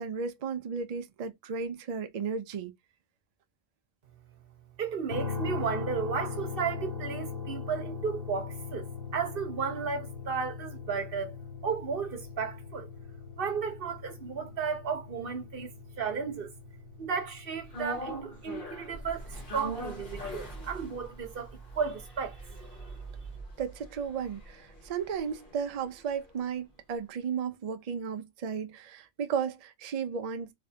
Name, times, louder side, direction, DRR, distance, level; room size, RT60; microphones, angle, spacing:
voice 1, 0.0-2.7 23.6-30.5, right 6 dB, 70° right, 0.3 m, -34 dB
voice 2, 4.8-8.9 9.1-11.3 11.6-12.9 13.4-16.5 17.0-22.4, right 6 dB, 50° right, 1.1 m, -34 dB
sound 1, 5.1-19.1, left 6 dB, 70° left, 2.3 m, -40 dB
sound 2, 17.7-26.0 26.3-26.4, right 1 dB, 45° left, 1.9 m, -42 dB
3.2 x 3.2 x 2.7 m
omnidirectional pair, 1.3 m